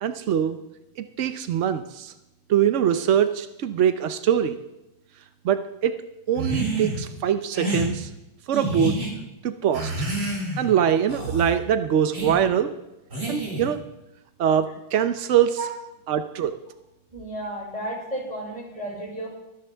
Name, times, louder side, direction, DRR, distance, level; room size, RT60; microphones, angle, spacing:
voice 1, 0.0-0.6 1.0-2.1 2.5-4.6 5.4-6.0 6.3-8.1 8.5-9.0 9.4-9.9 10.6-12.7 13.3-13.8 14.4-15.6 16.1-16.5, right 9 dB, 85° right, 10 dB, 0.6 m, -23 dB
sound 1, 6.3-7.0 7.5-7.9 8.5-9.1 9.7-10.7 11.1-11.5 12.1-12.4 13.1-13.7, right 1 dB, 55° right, 5.7 m, -28 dB
voice 2, 17.1-19.3, right 1 dB, 15° right, -4 dB, 5.4 m, -33 dB
23.5 x 10.5 x 3.5 m, 0.95 s
omnidirectional pair, 2.2 m